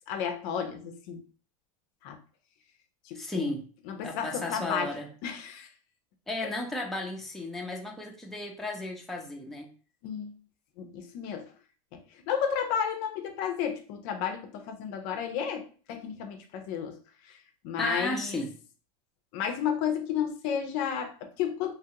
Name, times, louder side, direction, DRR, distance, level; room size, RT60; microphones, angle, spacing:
voice 1, 0.1-1.2 2.0-2.2 3.1-3.5 3.9-4.9 5.2-5.7 10.0-10.3 10.8-11.5 12.3-17.0 17.3-17.4 17.6-18.4 19.3-21.8, left 8 dB, 55° left, 0.5 m, -32 dB
voice 2, 3.1-3.7 4.0-5.1 6.3-9.7 17.8-18.5, left 2 dB, ahead, 0.6 m, -34 dB
3.2 x 2.3 x 2.8 m
supercardioid pair, 120°, 18 cm